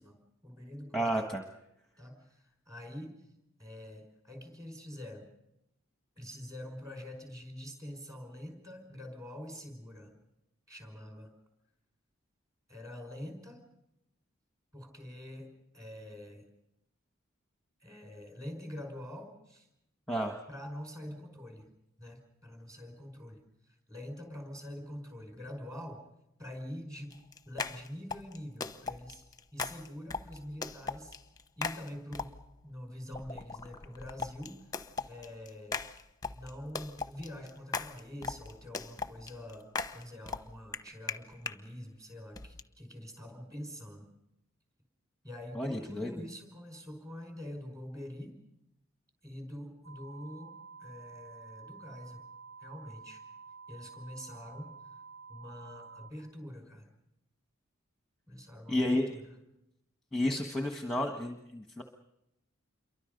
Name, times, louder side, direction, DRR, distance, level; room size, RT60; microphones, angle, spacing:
voice 1, 0.0-1.2 2.0-3.1 3.6-5.3 6.2-10.1 10.7-11.3 12.7-13.6 14.7-16.5 17.8-19.7 20.5-21.7 22.0-23.4 23.7-26.0 26.4-27.2 27.5-29.2 29.5-31.2 31.6-32.3 32.6-35.9 36.3-39.7 39.9-44.1 45.2-48.3 49.2-52.3 52.6-53.2 53.7-54.7 55.3-56.9 58.3-59.2, left 1 dB, 15° right, 4 dB, 5.2 m, -45 dB
voice 2, 0.9-1.4 20.1-20.4 45.5-46.1 58.7-59.2 60.1-61.8, equal, ahead, 3 dB, 1.4 m, -31 dB
sound 1, 27.1-32.6 33.1-41.6 42.3-42.6, left 4 dB, 20° left, 0.9 m, -39 dB
sound 2, 49.8-56.1, right 5 dB, 75° right, 2.6 m, -50 dB
28.0 x 23.5 x 5.3 m, 0.85 s
head